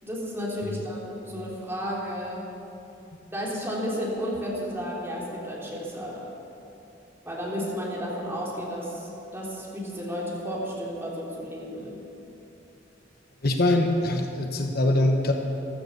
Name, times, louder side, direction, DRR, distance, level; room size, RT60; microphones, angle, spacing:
voice 1, 0.0-2.4 3.3-6.2 7.2-12.0, equal, 15° right, -5 dB, 3.4 m, -32 dB
voice 2, 13.4-15.3, left 1 dB, 55° left, 3 dB, 1.2 m, -23 dB
15.0 x 13.0 x 6.8 m, 2.9 s
head